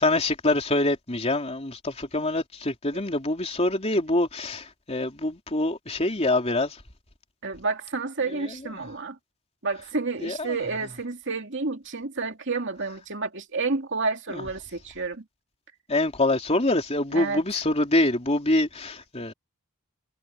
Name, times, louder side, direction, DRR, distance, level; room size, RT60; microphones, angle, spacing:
voice 1, 0.0-6.8 8.3-8.5 8.8-8.9 10.2-10.6 14.3-14.4 15.9-19.3, left 2 dB, 30° left, 3.3 m, -25 dB
voice 2, 7.4-9.2 9.6-15.2 17.1-17.4, right 3 dB, 55° right, 2.6 m, -30 dB
head